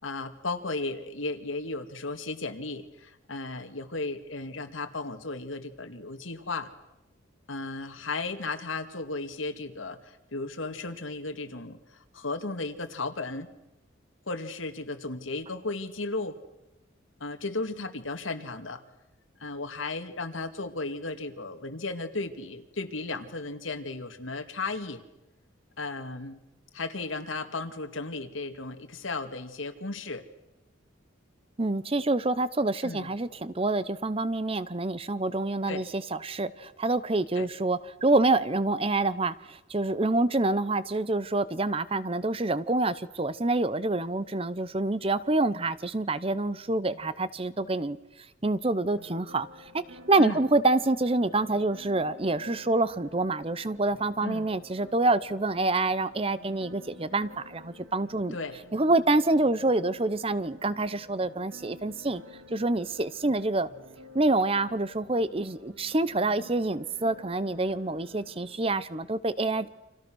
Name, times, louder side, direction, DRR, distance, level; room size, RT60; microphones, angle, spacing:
voice 1, 0.0-6.7 7.5-13.5 14.3-16.4 17.2-18.8 19.4-25.0 25.8-26.4 26.7-30.2 32.8-33.1 35.7-35.8 37.4-37.5 50.2-50.4 54.2-54.5 58.3-58.6, left 3 dB, 90° left, 2.3 m, -35 dB
voice 2, 31.6-48.0 48.4-49.8 50.1-58.4 58.7-62.2 62.5-63.7 64.1-69.7, right 2 dB, 30° right, 0.8 m, -27 dB
sound 1, 49.0-68.6, left 1 dB, 90° right, 3.1 m, -51 dB
29.5 x 27.0 x 6.3 m
head